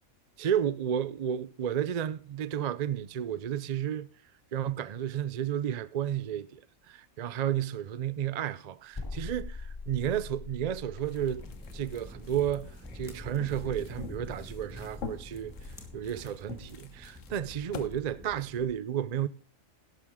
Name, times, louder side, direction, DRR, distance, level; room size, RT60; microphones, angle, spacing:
voice 1, 0.4-4.1 4.5-6.6 6.9-11.4 11.7-15.5 15.9-19.3, right 10 dB, 55° right, 0.4 m, -32 dB
sound 1, 8.9-12.0, left 3 dB, 25° left, 0.5 m, -42 dB
sound 2, 10.9-17.9, left 6 dB, 70° left, 1.3 m, -47 dB
sound 3, 11.2-18.7, left 1 dB, ahead, 1.9 m, -46 dB
12.0 x 11.0 x 3.6 m
omnidirectional pair, 1.4 m